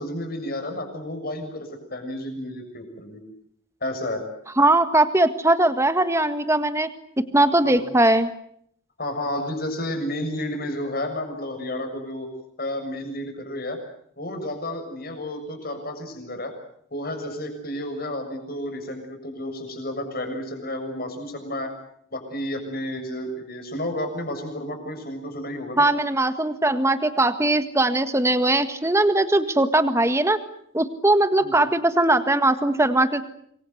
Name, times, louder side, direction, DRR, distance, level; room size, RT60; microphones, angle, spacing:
voice 1, 0.0-3.2 3.8-4.3 7.6-7.9 9.0-12.3 12.6-13.8 14.2-16.5 16.9-21.7 22.1-25.8 31.4-31.6, left 1 dB, 45° left, 5 dB, 7.1 m, -31 dB
voice 2, 4.6-6.9 7.3-8.3 25.8-30.4 30.7-33.2, right 2 dB, 15° right, 10 dB, 1.7 m, -20 dB
27.0 x 23.5 x 8.0 m, 0.68 s
head